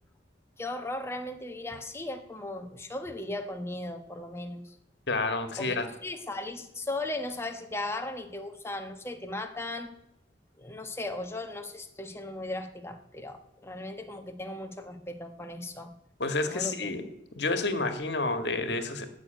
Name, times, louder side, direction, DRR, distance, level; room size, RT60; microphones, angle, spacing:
voice 1, 0.6-4.8 5.6-9.9 10.6-15.9 16.5-16.9, left 2 dB, 15° left, 5 dB, 1.3 m, -37 dB
voice 2, 5.1-5.9 16.2-17.0 17.3-19.1, left 3 dB, 65° left, 8 dB, 1.8 m, -29 dB
16.0 x 6.5 x 9.1 m, 0.84 s
head